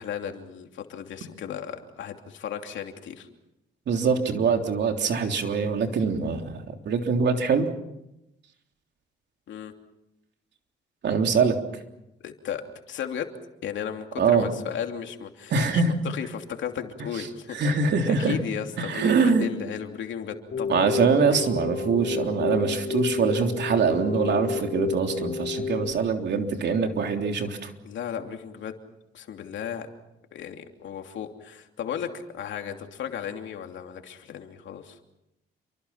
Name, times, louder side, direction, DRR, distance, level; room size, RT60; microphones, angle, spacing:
voice 1, 0.0-3.3 9.5-9.7 12.2-13.3 13.6-15.5 16.0-17.6 18.1-20.9 21.3-21.4 27.8-28.7 29.1-29.9 30.3-35.0, left 8 dB, 70° left, 4 dB, 2.9 m, -35 dB
voice 2, 3.9-7.7 11.0-11.6 14.2-14.5 15.5-15.9 17.1-17.3 17.5-18.4 18.8-19.5 20.7-27.7, right 5 dB, 60° right, 4 dB, 3.4 m, -23 dB
Keyboard (musical), 20.5-25.9, left 5 dB, 50° left, 4.1 m, -30 dB
29.0 x 24.0 x 5.8 m, 0.87 s
cardioid pair, 90°, 20 cm